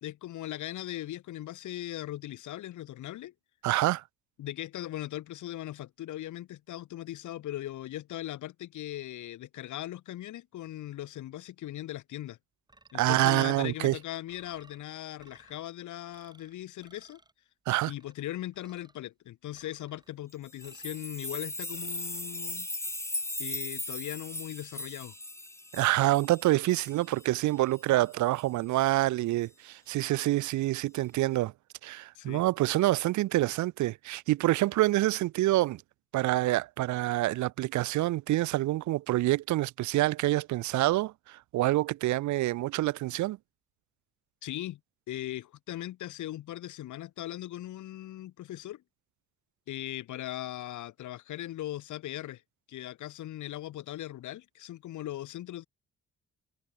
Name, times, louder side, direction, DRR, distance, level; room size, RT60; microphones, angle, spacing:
voice 1, 0.0-3.3 4.4-12.4 12.9-17.2 17.9-22.7 23.4-25.1 32.1-32.4 44.4-44.8 45.1-48.8 49.7-52.4 52.7-55.7, left 14 dB, 75° left, 1.5 m, -39 dB
voice 2, 3.6-4.0 12.9-14.0 17.7-17.9 25.7-31.5 31.8-35.8 36.1-43.4, right 16 dB, 70° right, 0.5 m, -27 dB
sound 1, 12.7-13.3 13.6-14.8 15.2-15.7 16.1-16.5 16.8-17.3 17.7-18.2 18.5-19.0 19.5-20.1 20.6-21.2 21.7-22.2, right 2 dB, 15° right, 7.3 m, -59 dB
sound 2, 20.5-27.3 27.7-27.8 28.1-28.3 28.8-28.9, left 1 dB, 10° left, 3.9 m, -38 dB
cardioid pair, 90°, 30 cm